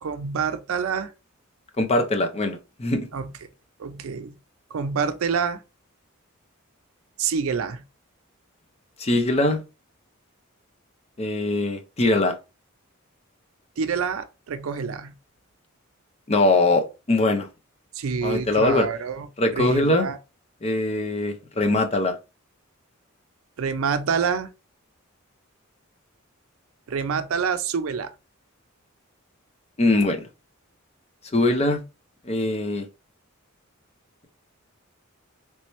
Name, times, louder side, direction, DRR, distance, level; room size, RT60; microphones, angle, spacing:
voice 1, 0.0-1.1 3.1-3.3 3.8-4.3 4.7-5.6 7.2-7.8 13.8-15.1 17.9-19.3 19.5-20.2 23.6-24.5 26.9-28.1, right 6 dB, 70° right, 0.4 m, -27 dB
voice 2, 1.8-3.1 9.0-9.6 11.2-12.4 16.3-17.5 18.2-18.9 19.4-20.1 20.6-22.1 29.8-30.3 31.3-31.8 32.2-32.9, left 2 dB, 30° left, 0.6 m, -22 dB
3.3 x 2.9 x 3.1 m
head